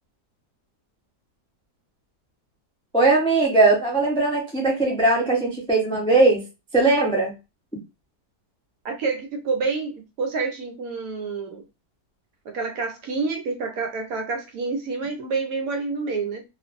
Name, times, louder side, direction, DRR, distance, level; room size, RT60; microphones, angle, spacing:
voice 1, 2.9-6.4 6.7-7.3, right 3 dB, 10° left, -2 dB, 0.3 m, -19 dB
voice 2, 8.8-11.6 12.4-16.4, right 4 dB, 70° right, 3 dB, 1.0 m, -28 dB
2.5 x 2.4 x 2.5 m, 0.27 s
omnidirectional pair, 1.8 m